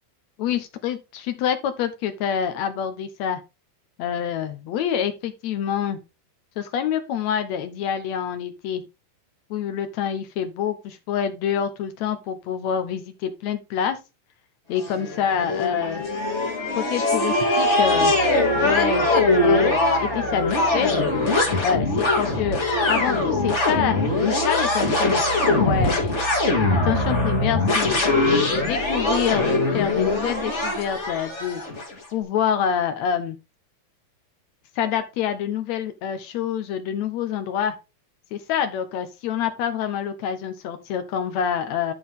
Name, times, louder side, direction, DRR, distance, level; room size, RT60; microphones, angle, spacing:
voice 1, 0.4-3.4 4.0-6.0 6.6-8.8 9.5-14.0 14.7-16.0 16.8-18.1 18.5-20.9 21.6-22.6 22.9-25.2 25.5-26.1 26.7-28.0 28.5-31.6 32.1-33.4 34.7-37.7 38.3-41.9, left 8 dB, 80° left, 9 dB, 1.6 m, -26 dB
sound 1, 14.8-31.9, left 2 dB, 25° left, 1.7 m, -22 dB
11.5 x 4.5 x 3.6 m, 0.26 s
omnidirectional pair, 4.3 m